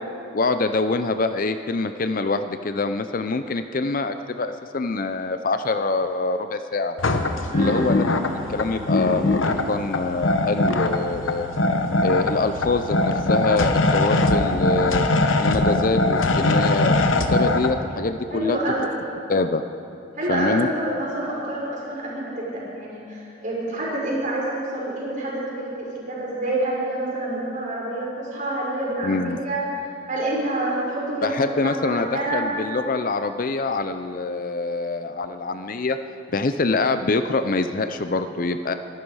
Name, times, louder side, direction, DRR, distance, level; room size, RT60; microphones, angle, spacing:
voice 1, 0.3-7.0 7.5-8.1 8.5-11.5 12.0-15.0 15.4-18.6 19.3-19.6 20.3-20.7 29.0-29.4 31.2-36.0 36.3-38.7, left 3 dB, 45° left, 9 dB, 0.5 m, -25 dB
sound 1, 7.0-17.7, left 2 dB, 80° left, 1.0 m, -22 dB
voice 2, 7.5-7.8 18.3-19.0 20.2-32.4, right 1 dB, 40° right, -5 dB, 4.9 m, -27 dB
24.5 x 11.5 x 4.8 m, 2.7 s
head